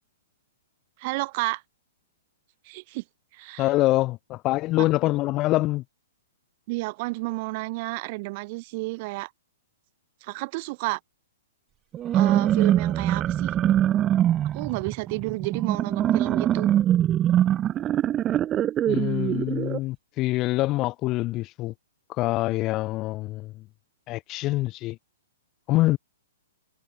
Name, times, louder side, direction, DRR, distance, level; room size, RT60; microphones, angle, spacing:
voice 1, 1.0-1.6 2.7-3.0 3.3-3.7 6.7-9.3 10.2-11.0 12.1-13.5 14.5-16.7, right 25 dB, 30° right, 3.9 m, -31 dB
voice 2, 3.6-5.8 18.9-21.7 22.2-23.5 24.1-25.0 25.7-26.0, left 18 dB, 20° left, 1.2 m, -25 dB
sound 1, 11.9-19.8, right 11 dB, 15° right, 0.9 m, -23 dB
hypercardioid pair, 170°, 0 cm